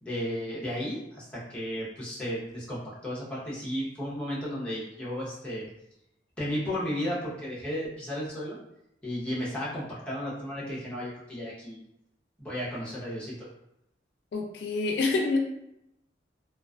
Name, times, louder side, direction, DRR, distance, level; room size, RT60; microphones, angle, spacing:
voice 1, 0.0-5.7 6.4-8.6 9.0-11.8 12.4-13.3, equal, 5° left, -7 dB, 0.7 m, -34 dB
voice 2, 14.3-15.4, left 3 dB, 70° left, 1 dB, 0.3 m, -27 dB
2.4 x 2.3 x 2.3 m, 0.80 s
head